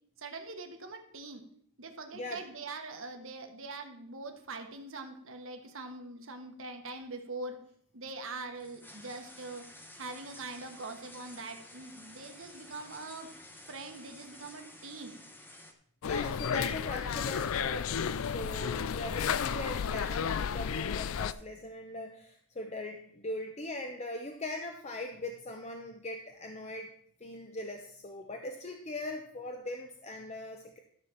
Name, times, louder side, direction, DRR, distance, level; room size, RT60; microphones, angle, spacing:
voice 1, 0.2-1.4 1.8-7.6 7.9-9.6 10.0-13.3 13.7-15.2, right 3 dB, 60° right, 5 dB, 1.4 m, -43 dB
voice 2, 2.1-2.4 16.0-26.9 27.2-30.8, left 2 dB, 30° left, 4 dB, 0.8 m, -40 dB
sound 1, 8.1-15.7, left 1 dB, 10° left, 1.0 m, -52 dB
sound 2, 16.0-21.3, left 7 dB, 65° left, 0.4 m, -32 dB
13.0 x 4.4 x 7.3 m, 0.65 s
head